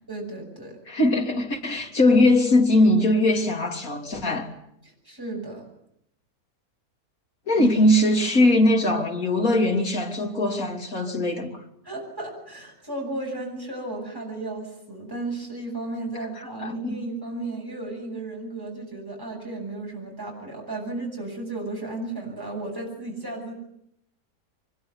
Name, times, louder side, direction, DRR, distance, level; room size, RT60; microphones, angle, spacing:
voice 1, 0.1-0.8 4.8-5.7 7.6-7.7 11.8-23.5, right 2 dB, 15° right, 7.8 m, -34 dB
voice 2, 0.9-4.5 7.5-11.6 16.4-17.0, left 1 dB, 65° left, 3.6 m, -21 dB
24.5 x 22.0 x 9.7 m
omnidirectional pair, 1.6 m